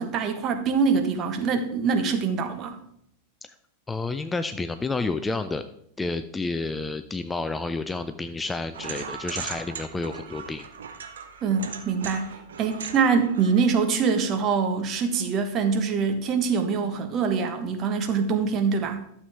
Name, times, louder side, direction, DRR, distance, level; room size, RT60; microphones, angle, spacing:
voice 1, 0.0-2.8 11.4-19.0, right 5 dB, 30° right, 7 dB, 1.1 m, -24 dB
voice 2, 3.9-5.6 6.0-10.7, left 3 dB, 10° left, 10 dB, 0.4 m, -30 dB
sound 1, 8.7-14.4, right 7 dB, 65° right, 0.8 m, -39 dB
12.0 x 6.9 x 3.5 m, 0.72 s
figure-of-eight pair, 90°, 0 cm